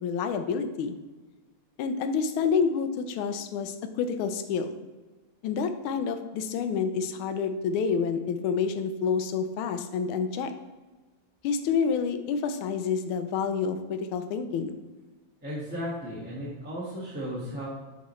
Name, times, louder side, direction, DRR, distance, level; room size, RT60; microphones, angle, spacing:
voice 1, 0.0-1.0 1.8-4.7 5.4-10.5 11.4-14.7, left 6 dB, 80° left, 8 dB, 1.4 m, -28 dB
voice 2, 15.4-17.7, equal, 5° right, -8 dB, 1.1 m, -35 dB
9.4 x 4.1 x 3.1 m, 1.2 s
omnidirectional pair, 2.4 m